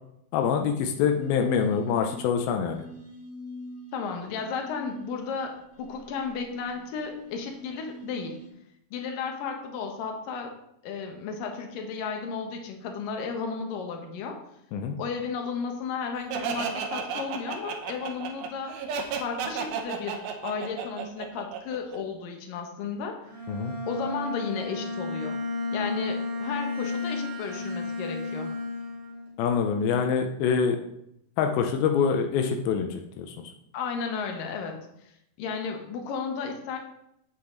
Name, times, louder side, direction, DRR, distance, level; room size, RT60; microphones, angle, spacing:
voice 1, 0.3-2.8 14.7-15.0 23.5-23.7 29.4-30.8 31.4-33.3, left 6 dB, 90° left, 4 dB, 2.6 m, -25 dB
sound 1, 0.8-8.5, right 1 dB, 20° left, 1.8 m, -44 dB
voice 2, 3.9-8.4 8.9-10.5 10.8-14.4 15.0-18.7 19.2-23.2 23.9-25.4 25.7-28.5 33.7-36.8, left 5 dB, 75° left, 3 dB, 2.8 m, -34 dB
Laughter, 16.3-22.0, right 6 dB, 90° right, 2.9 m, -33 dB
Bowed string instrument, 23.2-29.3, left 3 dB, 60° right, 3.5 m, -33 dB
8.6 x 7.9 x 3.9 m, 0.78 s
omnidirectional pair, 4.1 m